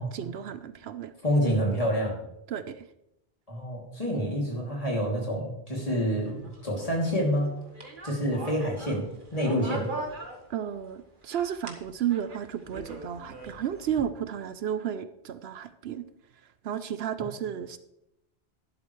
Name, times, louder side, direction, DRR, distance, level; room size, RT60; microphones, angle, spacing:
voice 1, 0.0-1.1 2.5-2.9 10.5-16.1 16.6-17.8, right 9 dB, 75° right, 12 dB, 0.8 m, -33 dB
voice 2, 1.2-2.2 3.5-7.6 8.0-9.0 9.3-9.9, equal, 35° left, -2 dB, 2.8 m, -27 dB
Ropeway fun, 5.9-10.9 11.2-14.0, right 2 dB, 50° right, 1.7 m, -42 dB
11.5 x 11.5 x 3.2 m, 0.86 s
omnidirectional pair, 1.1 m